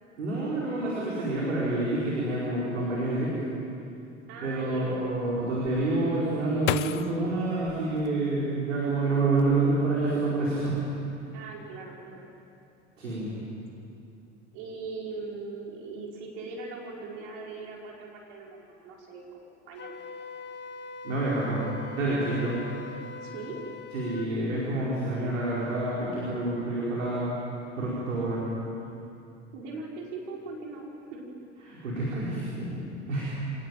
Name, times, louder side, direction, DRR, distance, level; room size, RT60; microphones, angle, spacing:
voice 1, 0.2-3.4 4.4-10.8 13.0-13.3 21.0-21.6 21.9-22.6 23.9-27.3 27.8-28.4 31.6-32.8 33.1-33.4, right 2 dB, 80° right, -7 dB, 5.1 m, -28 dB
voice 2, 4.3-5.2 11.3-12.3 14.5-20.0 23.2-23.6 29.5-31.2, right 3 dB, 60° right, -2 dB, 4.8 m, -40 dB
sound 1, 5.7-8.7 9.3-10.0 10.3-10.8, left 14 dB, 70° left, 0.7 m, -35 dB
Wind instrument woodwind instrument, 19.8-24.3, left 4 dB, 30° left, 1.1 m, -42 dB
25.0 x 18.5 x 9.2 m, 2.7 s
figure-of-eight pair, 65°, 38 cm